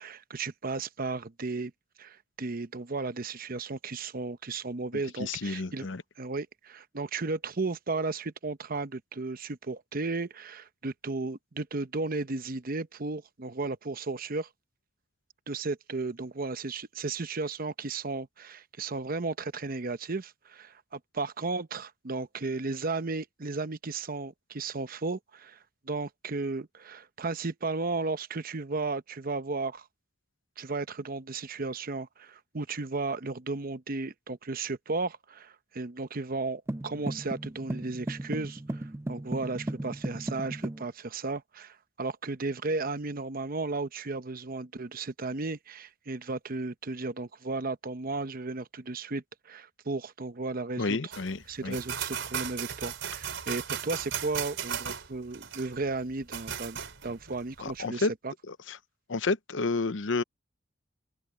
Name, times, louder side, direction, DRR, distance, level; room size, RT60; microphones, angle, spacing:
voice 1, 0.0-1.7 2.0-5.9 6.2-14.5 15.5-29.9 30.6-51.0 51.5-56.8 57.0-58.3, right 3 dB, 50° right, 0.8 m, -34 dB
voice 2, 5.2-6.0 50.8-51.8 57.6-58.1 58.5-58.8 59.1-60.2, left 3 dB, 70° left, 0.8 m, -30 dB
sound 1, 36.7-40.9, right 1 dB, 15° right, 0.4 m, -36 dB
sound 2, 51.1-57.7, right 8 dB, 75° right, 4.2 m, -36 dB
head